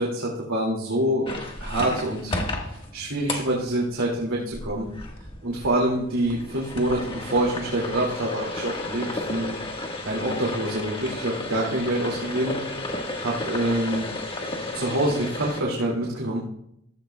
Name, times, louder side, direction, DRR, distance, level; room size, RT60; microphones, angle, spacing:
voice 1, 0.0-2.4 2.7-4.9 5.4-9.5 10.0-12.6 13.2-14.1 14.7-16.4, right 1 dB, 85° right, -3 dB, 2.3 m, -26 dB
sound 1, 1.2-15.6, left 2 dB, 25° left, 1.5 m, -33 dB
15.0 x 14.5 x 2.3 m, 0.77 s
head